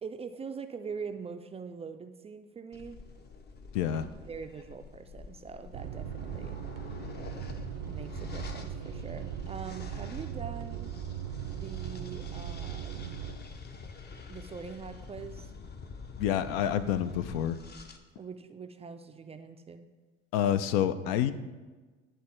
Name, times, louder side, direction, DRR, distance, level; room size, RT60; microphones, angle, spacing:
voice 1, 0.0-3.0 3.9-6.6 7.9-10.9 11.5-13.1 14.3-15.5 18.2-19.9, right 5 dB, 20° right, 8 dB, 0.4 m, -43 dB
sound 1, 2.7-18.0, left 4 dB, 30° left, 0.6 m, -46 dB
voice 2, 3.7-4.1 16.2-17.6 20.3-21.3, left 10 dB, 70° left, 12 dB, 0.5 m, -28 dB
sound 2, 5.7-13.4, right 10 dB, 70° right, 0.6 m, -39 dB
9.4 x 3.3 x 4.4 m, 1.3 s
hypercardioid pair, 65°, 33 cm